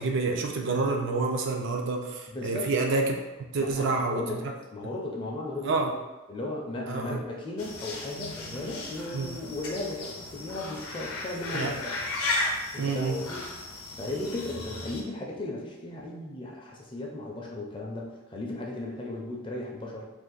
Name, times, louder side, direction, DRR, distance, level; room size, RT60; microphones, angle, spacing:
voice 1, 0.0-3.2 3.5-4.2 5.6-5.9 6.9-7.2 9.1-9.3 11.5-11.7 12.8-13.2, right 3 dB, 55° right, 2 dB, 0.4 m, -28 dB
voice 2, 2.3-2.7 3.6-4.4 4.7-6.0 6.3-11.9 12.7-13.5 14.0-20.1, left 2 dB, 20° left, -2 dB, 0.4 m, -36 dB
sound 1, 7.6-15.0, left 2 dB, 80° left, 0.6 m, -35 dB
2.6 x 2.5 x 3.8 m, 1.1 s
head